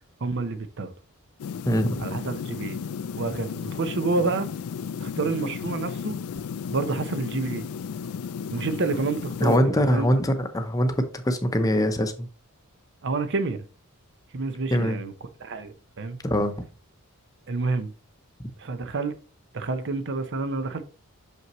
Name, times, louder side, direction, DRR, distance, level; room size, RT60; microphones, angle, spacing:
voice 1, 0.2-0.9 2.0-2.8 3.2-4.5 5.0-6.2 6.7-7.7 8.5-10.1 13.0-13.6 14.3-15.1 15.4-16.2 17.5-17.9 18.6-19.1 19.5-20.8, right 3 dB, 55° right, 0.7 m, -28 dB
sound 1, 1.4-9.6, left 6 dB, 70° left, 0.4 m, -34 dB
voice 2, 1.7-2.0 9.4-12.3 14.7-15.0 16.2-16.5, equal, 15° left, 0.7 m, -23 dB
6.0 x 5.5 x 3.0 m
head